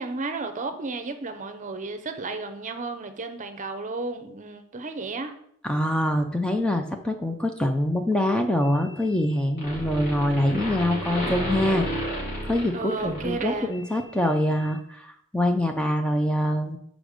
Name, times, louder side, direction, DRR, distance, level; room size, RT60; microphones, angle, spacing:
voice 1, 0.0-5.3 12.7-13.7, right 3 dB, 35° right, 8 dB, 0.7 m, -33 dB
voice 2, 5.6-11.9 12.4-16.8, left 1 dB, 5° left, 5 dB, 0.5 m, -24 dB
sound 1, 8.6-9.3 9.6-14.0, equal, 50° left, 3.1 m, -32 dB
5.1 x 5.0 x 6.4 m, 0.69 s
head